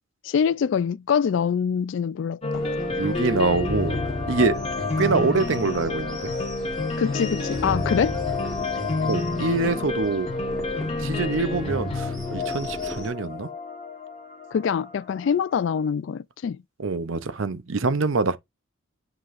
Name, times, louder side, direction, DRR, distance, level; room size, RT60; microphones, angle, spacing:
voice 1, 0.2-2.7 7.0-8.2 14.5-16.6, left 7 dB, 65° left, 0.3 m, -24 dB
sound 1, 2.4-15.3, left 3 dB, 30° left, 1.5 m, -29 dB
sound 2, 2.5-13.1, equal, ahead, 1.5 m, -40 dB
voice 2, 2.9-4.0 4.3-4.6 5.0-6.3 9.1-10.3 11.0-13.5 16.8-18.4, right 3 dB, 75° right, 0.7 m, -25 dB
7.7 x 4.9 x 2.5 m
head